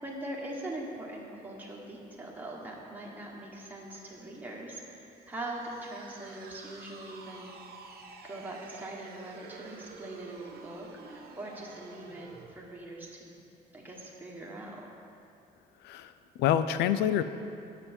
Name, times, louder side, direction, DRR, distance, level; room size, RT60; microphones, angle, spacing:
voice 1, 0.0-7.5 8.2-13.3 13.7-14.9, right 1 dB, 10° right, -3 dB, 1.4 m, -42 dB
sound 1, 5.1-12.6, right 4 dB, 65° right, 0.9 m, -49 dB
voice 2, 15.8-17.2, left 10 dB, 80° left, 12 dB, 0.4 m, -27 dB
8.8 x 6.9 x 4.4 m, 2.7 s
cardioid pair, 110°, 17 cm